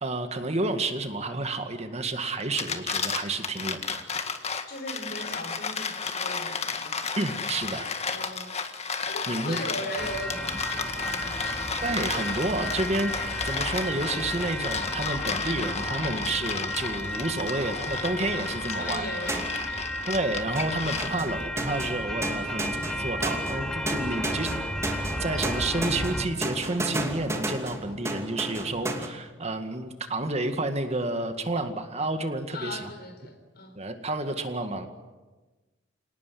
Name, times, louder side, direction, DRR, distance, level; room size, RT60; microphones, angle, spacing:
voice 1, 0.0-4.0 7.2-7.9 9.3-9.6 11.7-19.1 20.1-24.5 24.8-32.9 33.8-34.9, right 2 dB, 35° right, 7 dB, 2.1 m, -30 dB
sound 1, 2.4-21.4, left 5 dB, 35° left, 1.8 m, -33 dB
voice 2, 4.7-7.2 8.1-8.6 9.0-11.6 18.7-20.1 24.1-24.4 32.5-33.8, left 1 dB, 55° left, 7 dB, 4.4 m, -39 dB
sound 2, 10.0-26.3, equal, 5° left, 2.5 m, -33 dB
sound 3, 19.3-19.8 20.6-29.1, right 1 dB, 15° right, 2.7 m, -33 dB
28.0 x 19.0 x 9.5 m, 1.2 s
head